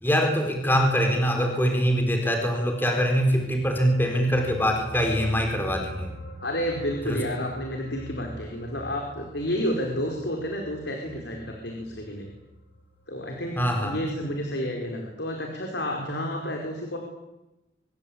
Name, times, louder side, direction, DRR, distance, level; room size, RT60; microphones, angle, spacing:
voice 1, 0.0-6.1 7.0-7.2 13.6-14.0, equal, 10° left, 3 dB, 4.5 m, -23 dB
sound 1, 3.3-13.9 14.2-14.4, right 1 dB, 60° left, 7.5 m, -44 dB
voice 2, 6.4-12.3 13.1-17.0, equal, 80° left, 2 dB, 4.8 m, -30 dB
26.5 x 22.5 x 8.8 m, 0.96 s
head